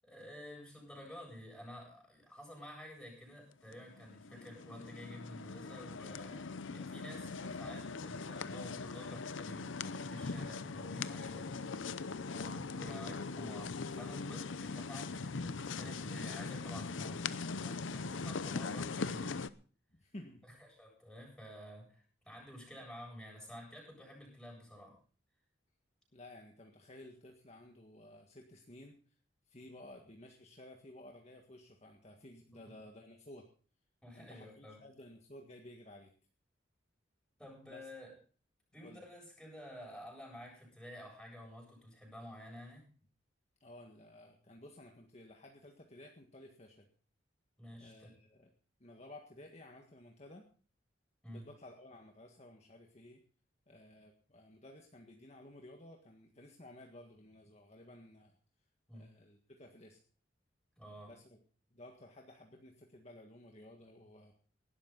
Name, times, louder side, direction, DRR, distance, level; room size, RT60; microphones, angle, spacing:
voice 1, 0.0-11.6 12.4-19.4 20.4-25.0 29.6-29.7 32.5-32.6 34.0-34.8 37.4-38.1 38.7-42.9 47.6-48.1 51.2-51.5 58.9-59.1 60.8-61.1, equal, 5° left, -1 dB, 7.7 m, -51 dB
sound 1, 3.7-19.5, left 4 dB, 85° left, 0.7 m, -41 dB
voice 2, 12.2-12.6 19.9-20.4 26.1-29.0 29.5-33.5 34.1-36.1 37.6-37.9 38.8-39.0 43.6-46.9 47.8-48.5 48.8-50.4 51.3-53.2 53.7-58.4 58.9-60.0 61.0-61.4 61.7-64.3, left 1 dB, 35° left, 2 dB, 1.8 m, -55 dB
19.0 x 12.0 x 4.0 m, 0.40 s
head